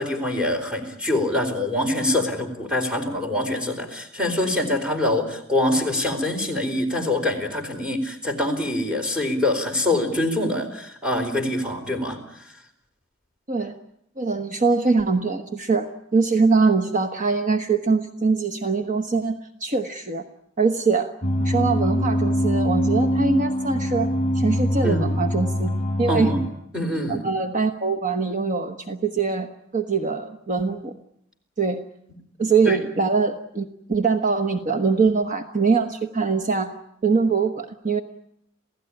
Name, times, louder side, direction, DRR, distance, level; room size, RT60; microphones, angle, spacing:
voice 1, 0.0-12.2 24.8-25.2 26.1-26.4 26.7-27.2 32.7-32.8, left 1 dB, 5° right, 2 dB, 4.4 m, -24 dB
voice 2, 14.2-20.2 20.6-21.1 21.4-25.7 26.0-26.3 27.1-30.9 31.6-31.8 32.4-36.7 37.0-38.0, right 4 dB, 40° right, 7 dB, 1.2 m, -23 dB
sound 1, 21.2-26.5, equal, 35° left, 5.2 m, -23 dB
28.0 x 16.5 x 9.9 m, 0.75 s
head